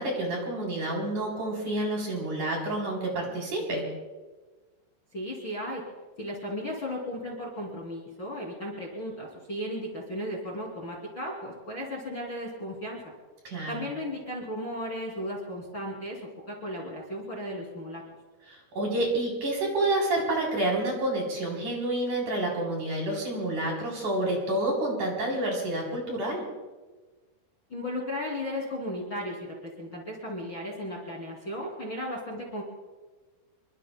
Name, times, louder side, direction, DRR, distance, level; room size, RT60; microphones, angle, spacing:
voice 1, 0.0-3.9 13.4-13.9 18.5-26.4, right 1 dB, 45° right, -1 dB, 4.6 m, -29 dB
voice 2, 5.1-5.8 6.2-13.0 13.7-16.2 16.5-18.0 27.7-29.4 29.6-32.6, left 1 dB, 30° left, -2 dB, 2.7 m, -35 dB
27.0 x 23.0 x 2.2 m, 1.3 s
omnidirectional pair, 5.4 m